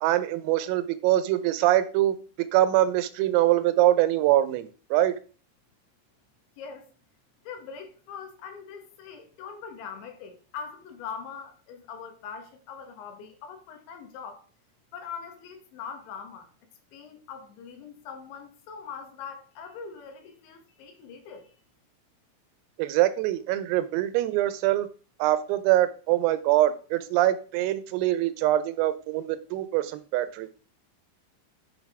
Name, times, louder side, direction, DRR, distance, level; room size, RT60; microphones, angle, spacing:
voice 1, 0.0-2.2 2.5-5.2 22.8-24.9 25.2-30.5, right 14 dB, 85° right, 3.4 m, -24 dB
voice 2, 6.6-6.9 7.4-14.5 14.9-16.5 16.9-21.5, left 6 dB, 70° left, 3.3 m, -42 dB
10.5 x 6.7 x 3.6 m
omnidirectional pair, 5.9 m